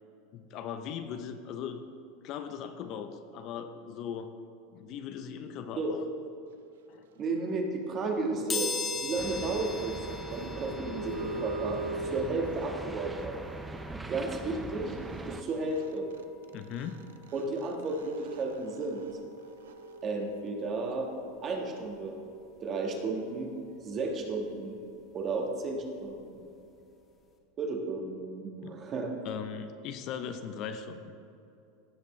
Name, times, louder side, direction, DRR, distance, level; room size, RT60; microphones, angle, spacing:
voice 1, 0.3-1.8 2.2-4.3 4.7-6.0 6.9-7.0 16.5-17.0 28.6-28.8 29.2-31.2, left 7 dB, 45° left, 9 dB, 0.6 m, -39 dB
voice 2, 7.2-8.7 8.9-10.0 10.3-13.3 14.1-15.0 15.3-16.1 17.3-19.0 20.0-21.1 21.4-22.2 22.6-23.5 23.8-24.8 25.1-26.4 27.6-29.1, right 3 dB, 35° right, 1 dB, 1.4 m, -33 dB
sound 1, 7.9-13.2 15.1-15.2 15.4-20.9, right 3 dB, 90° right, 0.5 m, -42 dB
sound 2, 8.5-19.2 19.6-19.7 20.9-21.0 21.3-23.4 23.7-26.3 26.7-26.9 27.2-27.3, left 5 dB, 25° left, 1.2 m, -42 dB
sound 3, 9.2-15.4, right 2 dB, 10° right, 0.5 m, -42 dB
16.0 x 5.9 x 3.2 m, 2.7 s
supercardioid pair, 130°, 0 cm